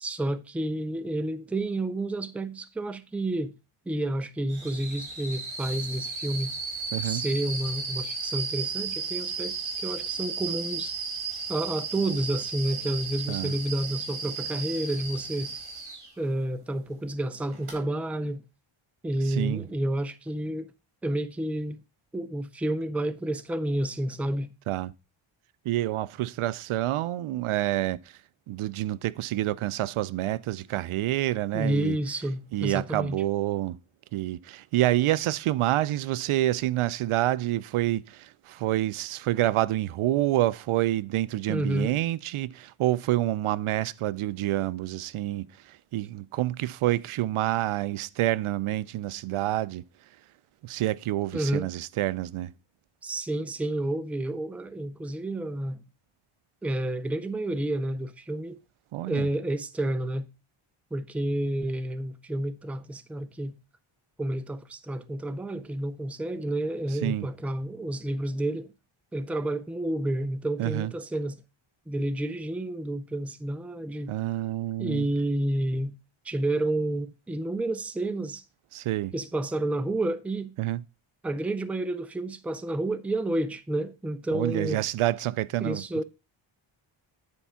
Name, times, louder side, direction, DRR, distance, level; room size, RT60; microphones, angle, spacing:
voice 1, 0.0-3.5 3.9-6.5 7.0-10.9 11.5-15.5 16.2-18.4 19.0-20.7 21.0-21.8 22.1-24.5 31.5-33.2 41.5-42.0 51.3-51.7 53.0-55.8 56.6-58.6 59.1-60.3 60.9-63.6 64.2-68.7 69.1-71.4 71.9-74.1 74.8-75.9 76.3-78.4 79.1-80.5 81.2-84.8 85.6-86.0, right 1 dB, 5° right, 0.4 m, -30 dB
sound 1, 4.5-16.1 17.5-17.7, right 4 dB, 50° right, 4.1 m, -34 dB
voice 2, 6.9-7.2 13.3-13.5 19.3-19.6 24.7-24.9 25.6-28.0 28.5-32.0 32.5-33.8 34.1-49.8 50.6-52.5 58.9-59.3 67.0-67.3 70.6-70.9 74.1-75.1 78.7-79.1 80.6-80.8 84.3-86.0, right 15 dB, 80° right, 0.6 m, -28 dB
9.9 x 4.5 x 5.6 m
wide cardioid pair, 150°, 49 cm